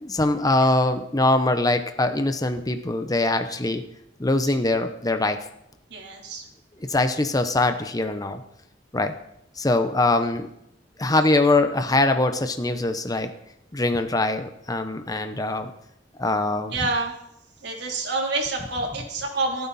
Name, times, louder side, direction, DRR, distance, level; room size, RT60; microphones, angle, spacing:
voice 1, 0.0-3.8 4.2-5.4 6.8-8.4 8.9-9.1 9.6-10.5 11.0-13.3 13.7-15.7 16.2-16.8, left 2 dB, 20° left, 7 dB, 0.9 m, -22 dB
voice 2, 5.9-6.4 16.7-17.1 17.6-19.7, right 3 dB, 65° right, 0 dB, 3.6 m, -27 dB
28.5 x 9.6 x 4.3 m, 0.76 s
head